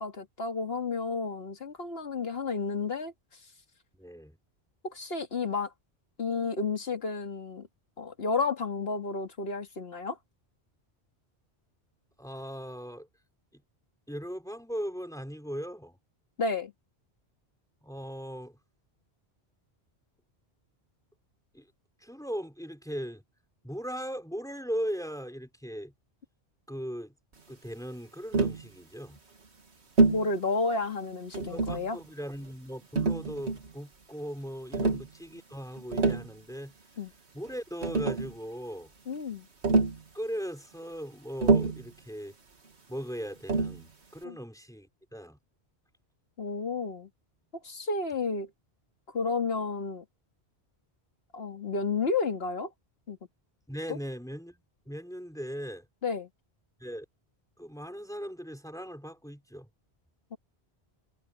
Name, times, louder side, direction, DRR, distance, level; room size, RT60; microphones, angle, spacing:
voice 1, 0.0-3.1 4.8-5.7 6.2-7.7 8.0-10.2 16.4-16.7 30.1-32.0 34.8-35.0 37.0-37.1 39.1-39.5 44.2-44.4 46.4-47.1 47.6-48.5 49.1-50.0 51.3-52.7 53.1-53.2 53.9-54.0 56.0-56.3 60.3-60.4, left 4 dB, 65° left, 2.2 m, -31 dB
voice 2, 4.0-4.4 12.2-13.1 13.5-13.6 14.1-16.0 17.8-18.6 21.5-21.7 22.0-23.2 23.6-25.9 26.7-27.1 27.5-29.2 31.4-36.7 37.3-38.9 40.1-42.3 42.9-45.4 53.7-55.9 56.8-57.1 57.6-59.7, equal, 5° left, 3.5 m, -38 dB
Tap, 28.3-28.7 30.0-30.3 31.3-31.9 33.0-33.7 34.7-35.1 35.8-36.3 37.5-37.6 37.8-38.3 39.6-40.0 41.4-41.9 43.5-43.8, right 3 dB, 80° right, 2.3 m, -26 dB
omnidirectional pair, 1.1 m